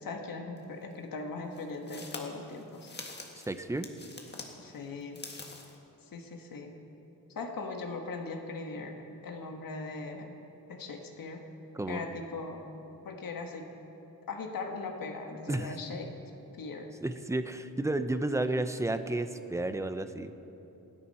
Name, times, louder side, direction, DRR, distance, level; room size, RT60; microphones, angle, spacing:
voice 1, 0.0-2.9 4.6-5.2 6.0-6.7 7.3-9.0 9.2-10.3 10.7-11.4 11.9-12.6 13.1-13.7 14.3-16.1 16.6-16.9, left 3 dB, 65° left, 2 dB, 1.7 m, -39 dB
sound 1, 0.6-0.7 1.5-4.5 5.0-5.8, left 3 dB, 30° left, 1.7 m, -45 dB
voice 2, 3.5-3.9 11.7-12.0 15.5-15.8 17.0-20.5, right 2 dB, 10° right, 9 dB, 0.7 m, -32 dB
28.0 x 10.5 x 4.3 m, 3.0 s
wide cardioid pair, 125°, 36 cm